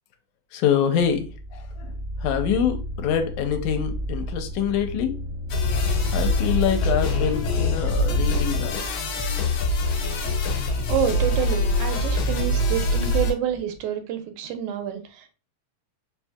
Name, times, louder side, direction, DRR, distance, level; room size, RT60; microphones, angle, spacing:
voice 1, 0.5-1.9 2.2-5.2 6.1-8.8, left 8 dB, 85° left, 1.9 m, -25 dB
sound 1, 1.0-13.8, equal, 60° right, 0.8 m, -33 dB
sound 2, 5.5-13.3, left 2 dB, 70° left, 1.7 m, -24 dB
voice 2, 10.9-15.3, right 9 dB, 90° right, 2.0 m, -28 dB
4.7 x 2.6 x 2.3 m
omnidirectional pair, 3.4 m